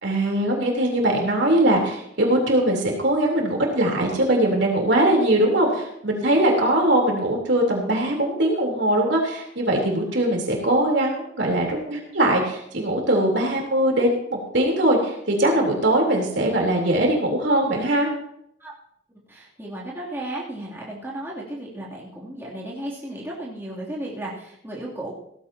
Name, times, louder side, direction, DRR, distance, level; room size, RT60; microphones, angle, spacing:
voice 1, 0.0-18.1, right 1 dB, 60° right, 0 dB, 3.6 m, -21 dB
voice 2, 19.3-25.1, right 1 dB, 10° right, -6 dB, 2.9 m, -34 dB
17.0 x 15.0 x 2.9 m, 0.75 s
head